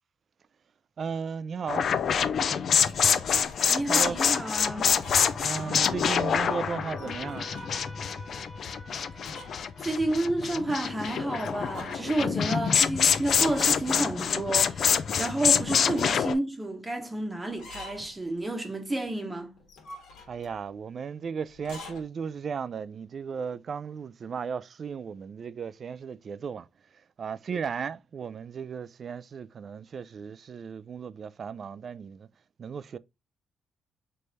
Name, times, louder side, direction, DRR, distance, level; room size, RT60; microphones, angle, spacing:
voice 1, 1.0-1.9 3.9-4.2 5.4-7.5 20.3-26.7 27.2-32.3 32.6-33.0, right 6 dB, 50° right, 0.3 m, -35 dB
sound 1, 1.7-16.3, left 7 dB, 55° left, 0.4 m, -26 dB
sound 2, 2.8-3.6 4.8-5.5 5.8-5.9 6.9-7.9 9.2-9.7 9.9-10.0 11.4-12.2 13.2-14.0 15.3-16.2 17.5-18.2 19.6-20.6 21.6-22.0, left 2 dB, 85° left, 1.6 m, -46 dB
voice 2, 3.7-5.0 9.3-9.5 9.8-19.6, right 2 dB, 20° right, 0.9 m, -31 dB
sound 3, 4.1-10.5, equal, 20° left, 1.6 m, -46 dB
3.4 x 3.3 x 4.0 m
cardioid pair, 90°, 0 cm